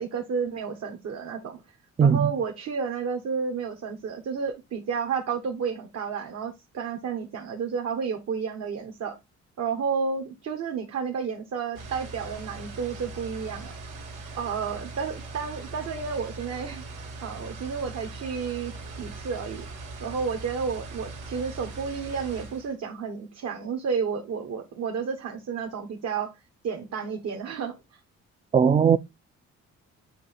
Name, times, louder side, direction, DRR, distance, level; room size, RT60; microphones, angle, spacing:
voice 1, 0.0-1.6 2.0-9.2 9.6-13.7 14.4-16.8 17.2-18.7 19.0-19.7 20.0-26.3 26.6-28.0, right 6 dB, 60° right, 1.2 m, -31 dB
voice 2, 2.0-2.3 28.5-29.0, right 7 dB, 20° right, 0.4 m, -18 dB
sound 1, 11.7-22.7, right 3 dB, 90° right, 2.2 m, -40 dB
7.8 x 2.8 x 4.2 m
cardioid pair, 90°, 30 cm